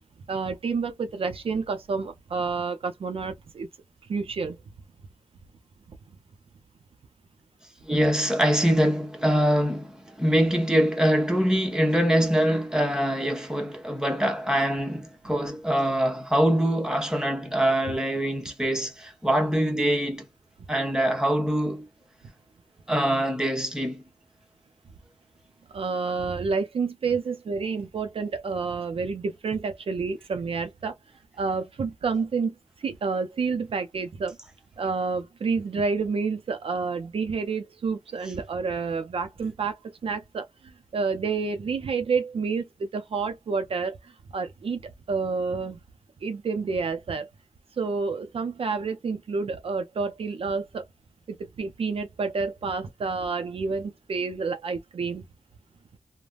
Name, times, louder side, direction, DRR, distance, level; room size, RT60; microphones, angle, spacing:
voice 1, 0.3-3.7 4.1-4.6 25.7-30.9 31.4-32.5 32.8-34.4 34.8-39.8 40.0-40.5 40.9-43.9 44.3-45.8 46.2-47.3 47.8-50.8 51.3-55.2, right 4 dB, 65° right, 0.5 m, -29 dB
voice 2, 7.8-20.3 20.7-21.9 22.9-24.0, equal, 5° right, 1.0 m, -24 dB
3.3 x 2.1 x 2.3 m
wide cardioid pair, 80°, 10 cm